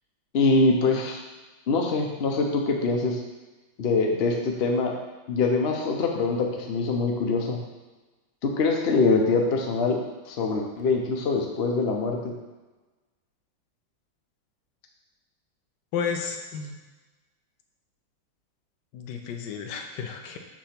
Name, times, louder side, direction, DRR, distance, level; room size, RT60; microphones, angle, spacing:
voice 1, 0.3-1.2 1.7-3.2 3.8-4.9 5.3-7.6 8.4-10.0 10.3-12.3, left 3 dB, 90° left, 1 dB, 0.5 m, -24 dB
voice 2, 15.9-16.8 18.9-20.4, left 6 dB, 70° left, 4 dB, 1.2 m, -32 dB
6.6 x 2.9 x 5.8 m, 1.2 s
omnidirectional pair, 2.2 m